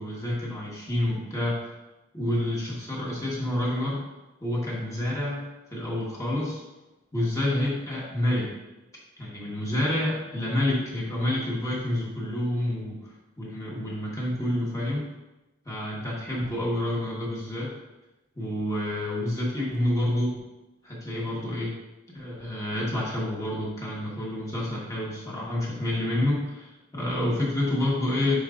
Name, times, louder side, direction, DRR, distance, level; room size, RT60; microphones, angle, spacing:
voice 1, 0.0-1.7 2.1-4.0 4.4-5.4 5.7-6.6 7.1-8.5 9.2-15.1 15.6-17.7 18.3-20.4 20.8-21.7 22.1-28.4, left 1 dB, 15° left, -4 dB, 1.3 m, -28 dB
8.8 x 4.6 x 2.5 m, 1.1 s
head